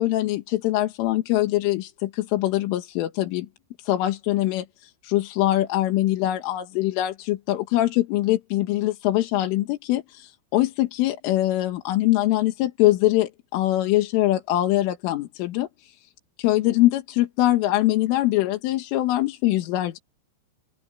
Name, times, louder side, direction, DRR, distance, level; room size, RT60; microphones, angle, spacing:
voice 1, 0.0-3.5 3.9-15.9 16.4-20.0, left 15 dB, 90° left, 4.2 m, -23 dB
open air
omnidirectional pair, 5.5 m